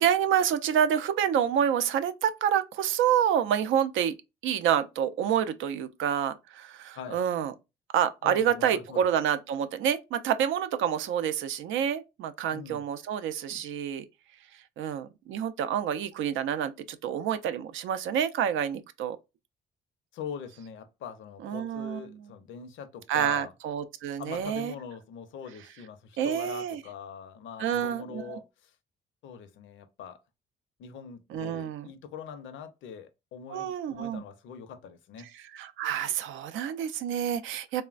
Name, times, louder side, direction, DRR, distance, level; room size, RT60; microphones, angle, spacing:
voice 1, 0.0-4.1 4.4-7.5 7.9-14.0 14.8-19.2 21.4-22.0 23.1-24.7 26.2-26.8 27.6-28.4 31.3-31.9 33.5-34.2 35.5-37.8, right 9 dB, 80° right, 0.4 m, -28 dB
voice 2, 8.2-9.1 12.5-12.8 13.5-13.6 20.1-23.5 24.2-28.8 29.2-30.2 30.8-35.3, left 7 dB, 75° left, 0.5 m, -42 dB
3.1 x 2.1 x 2.4 m
cardioid pair, 90°, 20 cm